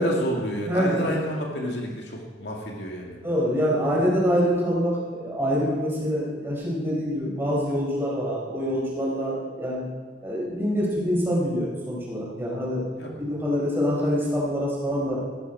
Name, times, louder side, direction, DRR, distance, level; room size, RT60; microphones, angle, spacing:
voice 1, 0.0-3.2 13.0-13.1, equal, 70° left, -1 dB, 2.3 m, -30 dB
voice 2, 0.7-1.3 3.2-9.8 10.2-12.8 13.2-15.2, equal, 10° right, -5 dB, 4.3 m, -25 dB
15.0 x 11.5 x 4.7 m, 1.5 s
head